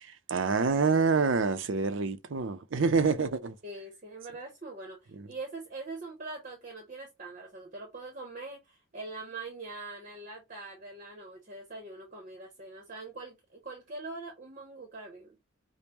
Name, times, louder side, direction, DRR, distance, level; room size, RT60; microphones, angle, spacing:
voice 1, 0.3-3.5 5.2-5.3, right 4 dB, 65° right, 0.5 m, -26 dB
voice 2, 3.6-15.4, right 3 dB, 40° right, 0.8 m, -43 dB
5.2 x 2.1 x 3.0 m
head